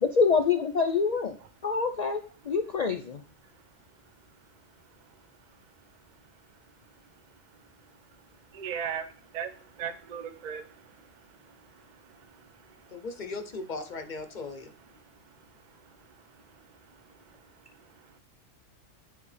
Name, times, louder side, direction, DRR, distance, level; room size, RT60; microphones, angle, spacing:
voice 1, 0.0-1.4 1.6-3.2, left 5 dB, 75° left, 5 dB, 0.3 m, -26 dB
voice 2, 4.7-13.1 15.0-18.2, right 7 dB, 45° right, 10 dB, 0.6 m, -43 dB
voice 3, 12.9-14.7, left 3 dB, 45° left, 7 dB, 0.7 m, -37 dB
9.8 x 3.4 x 3.2 m, 0.40 s
omnidirectional pair, 1.4 m